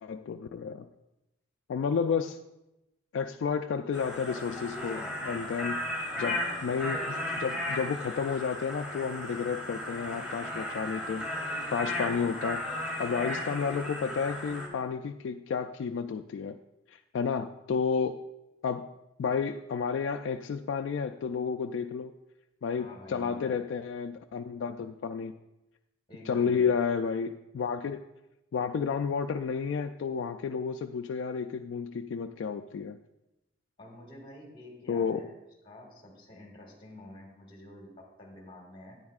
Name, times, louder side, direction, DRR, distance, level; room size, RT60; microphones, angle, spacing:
voice 1, 0.0-0.9 1.7-2.4 3.1-5.8 6.2-12.6 13.0-16.6 16.9-18.2 18.6-18.9 19.2-22.1 22.6-25.3 26.3-28.0 28.5-33.0 34.9-35.2, left 6 dB, 65° left, 7 dB, 0.3 m, -31 dB
sound 1, 3.9-14.7, left 1 dB, 5° right, 1.6 m, -35 dB
voice 2, 4.8-5.5 22.8-23.6 26.1-26.7 33.8-35.3 35.6-39.0, left 1 dB, 25° left, 1 dB, 1.7 m, -49 dB
11.0 x 9.5 x 2.4 m, 0.95 s
head